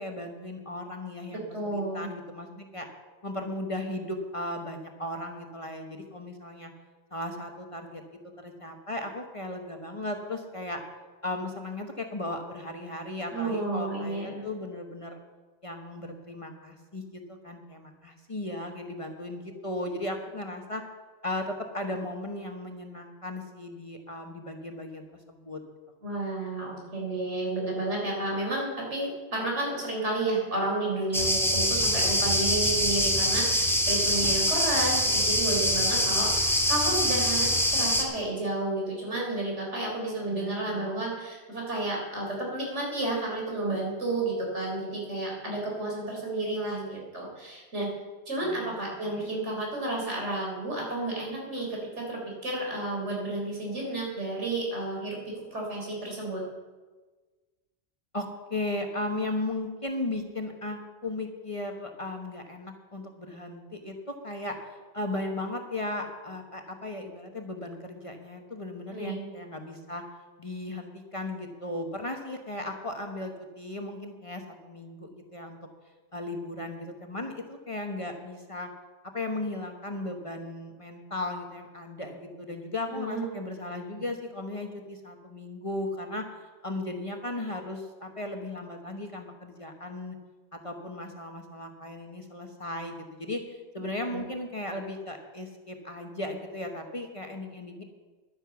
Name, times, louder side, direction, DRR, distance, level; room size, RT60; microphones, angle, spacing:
voice 1, 0.0-2.9 3.2-6.7 7.1-8.0 8.4-10.8 11.2-15.2 15.6-20.8 21.2-25.6 40.3-40.9 48.4-48.7 49.0-49.3 58.1-70.0 70.4-75.6 76.1-78.7 79.0-90.2 90.5-97.8, left 1 dB, 30° left, 4 dB, 1.2 m, -36 dB
voice 2, 1.3-2.1 13.3-14.4 26.0-47.9 48.3-51.8 52.1-56.4 68.9-69.3 82.9-83.2 83.6-84.0 94.1-94.2, right 2 dB, 80° right, -2 dB, 4.2 m, -31 dB
sound 1, 31.1-38.0, equal, ahead, 1.6 m, -24 dB
11.5 x 9.8 x 7.0 m, 1.3 s
omnidirectional pair, 1.2 m